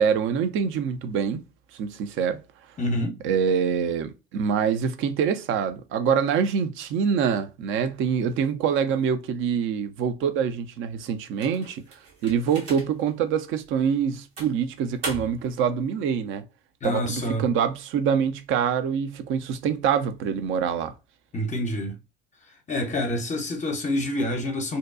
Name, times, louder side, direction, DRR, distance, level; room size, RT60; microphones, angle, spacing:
voice 1, 0.0-1.4 1.7-2.4 3.2-11.8 12.2-16.4 16.8-20.9, right 7 dB, 45° right, 0.5 m, -25 dB
voice 2, 2.8-3.2 16.8-17.4 21.3-22.0 22.7-24.8, left 1 dB, 25° left, 0.6 m, -27 dB
sound 1, 11.4-13.1 13.6-13.8 14.4-15.6, right 2 dB, 75° right, 1.1 m, -38 dB
2.6 x 2.2 x 2.3 m
hypercardioid pair, 70°, 29 cm